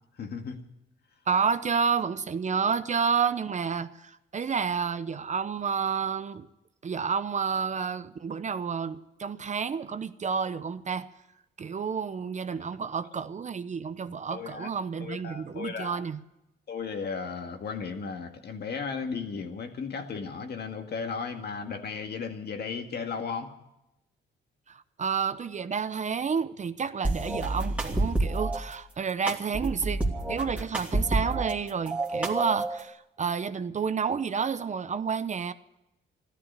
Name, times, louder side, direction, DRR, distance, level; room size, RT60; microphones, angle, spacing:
voice 1, 0.2-0.6 14.3-14.7 15.0-16.0 16.7-23.5, left 5 dB, 55° left, 2.0 m, -35 dB
voice 2, 1.3-6.5 6.8-11.1 11.6-16.2 24.7-30.0 30.3-35.5, right 6 dB, 35° right, 0.8 m, -30 dB
sound 1, 27.0-28.6 29.3-31.5 31.9-32.8, right 2 dB, 5° right, 2.8 m, -29 dB
14.0 x 12.5 x 8.2 m
cardioid pair, 90°, 20 cm